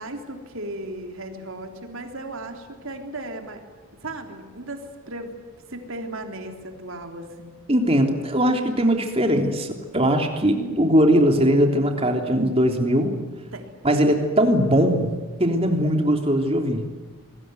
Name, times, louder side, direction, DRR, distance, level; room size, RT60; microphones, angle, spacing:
voice 1, 0.0-3.6 3.9-5.3 5.7-7.5 10.5-10.9 13.5-13.7, right 1 dB, 65° right, 4 dB, 3.4 m, -36 dB
voice 2, 7.7-13.1 13.8-15.1 15.4-16.8, equal, 25° right, 4 dB, 3.4 m, -20 dB
27.5 x 21.0 x 9.4 m, 1.3 s
head